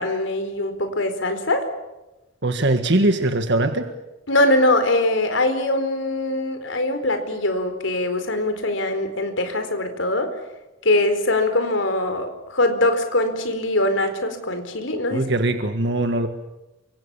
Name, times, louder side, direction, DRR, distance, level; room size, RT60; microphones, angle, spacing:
voice 1, 0.0-1.7 4.3-10.3 10.8-15.2, left 1 dB, 70° left, 8 dB, 4.6 m, -22 dB
voice 2, 2.4-3.9 15.1-16.3, right 2 dB, 60° right, 7 dB, 1.7 m, -21 dB
29.0 x 25.5 x 7.2 m, 1.0 s
head